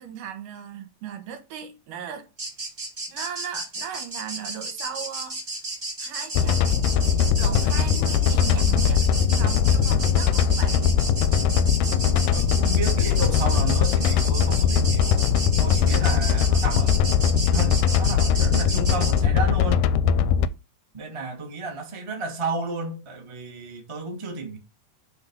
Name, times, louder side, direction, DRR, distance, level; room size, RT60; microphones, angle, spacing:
voice 1, 0.0-2.3 3.1-5.4 6.0-10.9 11.8-11.9, right 8 dB, 80° right, 2.9 m, -38 dB
sound 1, 2.4-19.2, right 2 dB, 50° right, 0.5 m, -33 dB
sound 2, 6.3-20.5, left 7 dB, 80° left, 1.9 m, -20 dB
voice 2, 11.9-15.3 15.6-17.0 17.5-19.9 20.9-24.6, right 3 dB, 15° right, 0.9 m, -32 dB
6.9 x 3.9 x 5.5 m
omnidirectional pair, 3.8 m